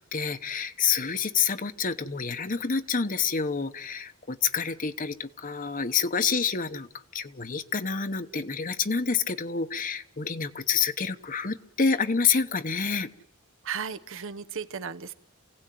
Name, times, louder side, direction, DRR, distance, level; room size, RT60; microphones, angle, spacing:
voice 1, 0.1-6.9 7.1-13.1, left 6 dB, 40° left, 8 dB, 1.0 m, -28 dB
voice 2, 13.6-15.1, right 6 dB, 60° right, 13 dB, 1.0 m, -35 dB
28.0 x 17.0 x 9.3 m, 0.79 s
head